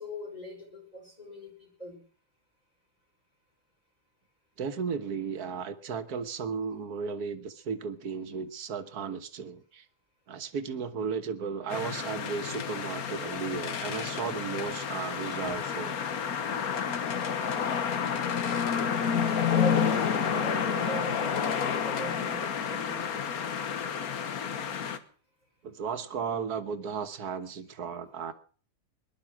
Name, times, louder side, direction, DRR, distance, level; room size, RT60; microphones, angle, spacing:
voice 1, 0.0-2.0 15.4-15.6 19.5-23.2, equal, 25° left, 0 dB, 5.3 m, -40 dB
voice 2, 4.6-9.8 10.3-15.9 25.6-28.3, right 6 dB, 85° right, 9 dB, 1.7 m, -35 dB
sound 1, 11.7-25.0, left 7 dB, 75° left, 1.6 m, -30 dB
19.5 x 11.0 x 6.1 m, 0.44 s
omnidirectional pair, 1.6 m